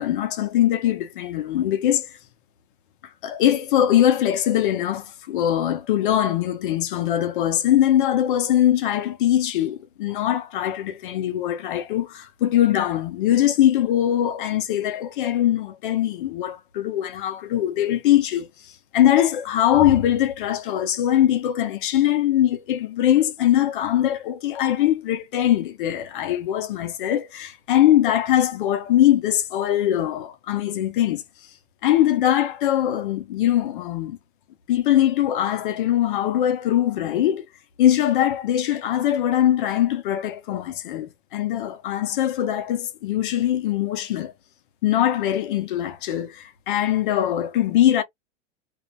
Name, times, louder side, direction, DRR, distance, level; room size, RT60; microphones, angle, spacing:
voice 1, 0.0-2.1 3.2-18.5 18.9-31.2 31.8-34.2 34.7-37.4 37.8-44.3 44.8-48.0, left 11 dB, 50° left, 0.6 m, -21 dB
2.4 x 2.1 x 2.6 m
supercardioid pair, 165°, 34 cm